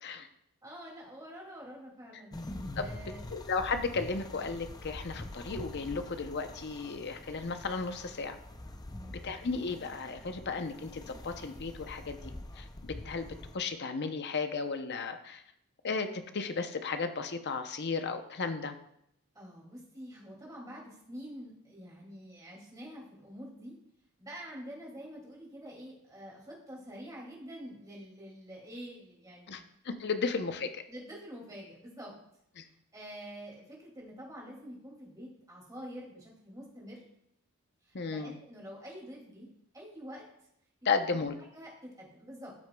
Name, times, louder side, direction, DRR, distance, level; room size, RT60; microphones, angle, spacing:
voice 1, 0.6-2.4 2.8-3.2 8.9-9.5 19.3-23.8 24.2-29.6 30.2-30.3 30.9-32.1 32.9-37.0 37.9-39.5 39.7-40.2 41.5-41.7 42.0-42.5, equal, 15° right, -3 dB, 2.4 m, -47 dB
sound 1, 2.3-13.6, left 1 dB, 20° left, 0.5 m, -45 dB
voice 2, 3.3-8.4 9.2-15.4 15.8-18.7 29.5-30.8 32.6-32.7 37.9-38.4 40.8-41.3, left 4 dB, 50° left, 8 dB, 0.7 m, -34 dB
13.0 x 6.3 x 2.3 m, 0.74 s
head